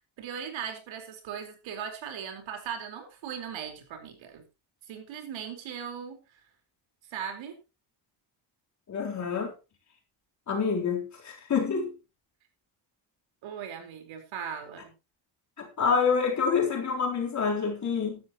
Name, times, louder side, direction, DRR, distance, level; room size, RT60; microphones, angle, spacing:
voice 1, 0.2-4.5 4.9-6.4 7.1-7.5 13.4-14.9, right 7 dB, 75° right, 4.6 m, -38 dB
voice 2, 8.9-9.5 10.5-11.9 15.6-18.2, left 5 dB, 35° left, 4.0 m, -27 dB
15.5 x 12.5 x 3.1 m
cardioid pair, 165°, 47 cm